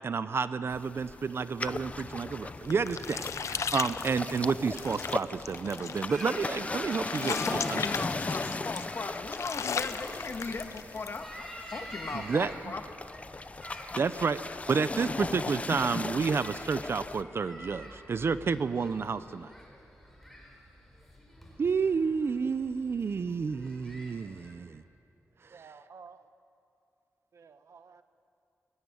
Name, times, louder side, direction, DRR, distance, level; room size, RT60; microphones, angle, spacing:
voice 1, 0.0-7.8 12.1-12.5 13.9-19.5 21.6-24.8, right 5 dB, 50° right, 13 dB, 0.6 m, -30 dB
sound 1, 0.7-17.2, left 3 dB, 25° left, 0.5 m, -38 dB
sound 2, 2.3-11.2, left 6 dB, 70° left, 0.6 m, -37 dB
sound 3, 6.1-24.5, equal, 5° left, 4.7 m, -48 dB
voice 2, 7.5-12.8, left 4 dB, 45° left, 6 dB, 1.6 m, -38 dB
voice 3, 25.5-26.3 27.3-28.0, right 5 dB, 70° right, 10 dB, 1.1 m, -52 dB
21.5 x 18.0 x 9.9 m, 2.6 s
wide cardioid pair, 155°, 5 cm